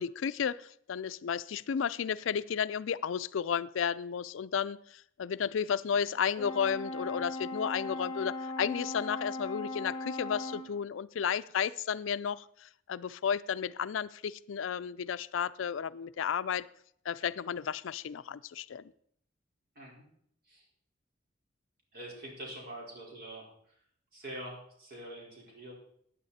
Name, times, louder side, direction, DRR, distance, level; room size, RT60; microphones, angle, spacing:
voice 1, 0.0-16.7 17.1-18.9, left 7 dB, 80° left, 16 dB, 0.4 m, -33 dB
Brass instrument, 6.4-10.8, left 2 dB, 20° left, 0.9 m, -38 dB
voice 2, 21.9-23.4 24.1-25.7, right 1 dB, 50° right, -2 dB, 4.5 m, -44 dB
14.5 x 9.6 x 4.2 m, 0.67 s
head